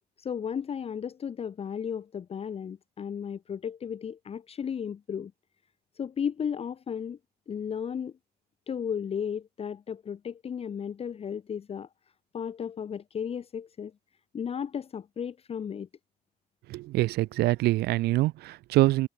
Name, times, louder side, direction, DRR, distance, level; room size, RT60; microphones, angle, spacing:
voice 1, 0.2-5.3 5.9-7.2 7.5-8.1 8.7-11.9 12.3-13.9 14.3-15.9, left 7 dB, 35° left, 1.0 m, -34 dB
voice 2, 16.7-19.1, right 18 dB, 75° right, 0.5 m, -25 dB
cardioid pair, 110°, 17 cm